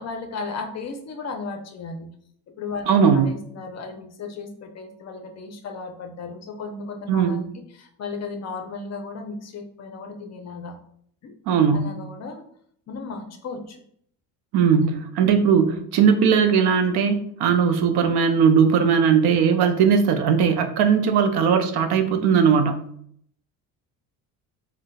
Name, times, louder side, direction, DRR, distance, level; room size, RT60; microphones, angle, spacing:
voice 1, 0.0-2.1 2.5-10.8 11.2-11.3 11.7-12.4 12.9-13.8 14.8-15.0 15.6-15.7, left 4 dB, 40° left, 4 dB, 0.6 m, -35 dB
voice 2, 2.9-3.3 7.1-7.4 11.5-11.9 14.5-22.9, right 6 dB, 70° right, 6 dB, 0.6 m, -19 dB
3.9 x 2.3 x 2.2 m, 0.66 s
cardioid pair, 90°, 41 cm